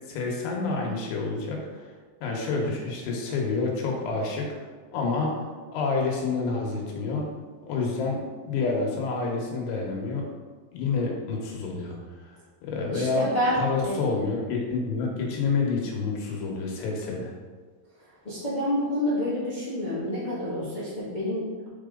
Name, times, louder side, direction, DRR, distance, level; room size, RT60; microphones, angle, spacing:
voice 1, 0.1-1.9 2.2-4.5 4.9-7.3 7.7-8.2 8.5-10.2 10.7-12.0 12.6-13.3 13.6-17.3, left 4 dB, 85° left, -1 dB, 3.3 m, -28 dB
voice 2, 12.9-14.0 17.9-21.7, equal, 40° left, -11 dB, 0.6 m, -28 dB
7.8 x 4.4 x 3.8 m, 1.4 s
omnidirectional pair, 4.6 m